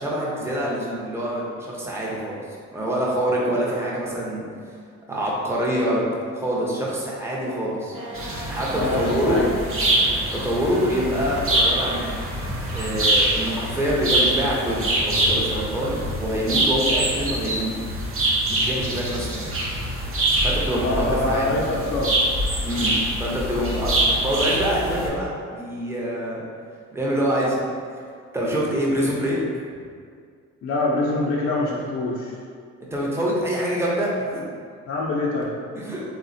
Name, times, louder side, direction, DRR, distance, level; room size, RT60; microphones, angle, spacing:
voice 1, 0.0-2.4 2.7-4.5 5.1-6.0 6.3-8.0 8.5-9.4 10.3-12.1 12.7-17.7 18.5-19.4 20.4-21.5 22.6-26.4 26.9-27.6 28.3-29.4 32.9-34.4 35.7-36.0, equal, 10° right, -5 dB, 0.6 m, -25 dB
sound 1, 7.9-15.6, equal, 80° right, 0.9 m, -38 dB
sound 2, 8.1-25.1, right 1 dB, 45° right, 0.7 m, -24 dB
voice 2, 8.8-9.5 20.8-22.2 22.8-22.9 30.6-32.4 34.9-35.5, left 2 dB, 45° left, -4 dB, 0.4 m, -25 dB
3.3 x 2.1 x 2.5 m, 2.1 s
cardioid pair, 90°, 30 cm